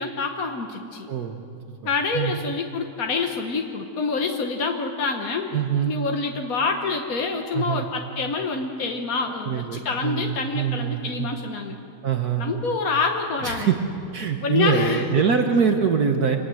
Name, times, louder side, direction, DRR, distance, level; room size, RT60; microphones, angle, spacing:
voice 1, 0.0-1.1 1.8-5.5 5.8-11.8 12.4-13.7 14.4-15.2, left 4 dB, 60° left, 3 dB, 0.9 m, -26 dB
voice 2, 5.5-5.9 7.5-7.9 9.4-11.3 12.0-12.5 13.4-13.8 14.1-16.4, right 7 dB, 85° right, 4 dB, 0.8 m, -23 dB
26.0 x 20.0 x 7.8 m, 2.4 s
omnidirectional pair, 3.4 m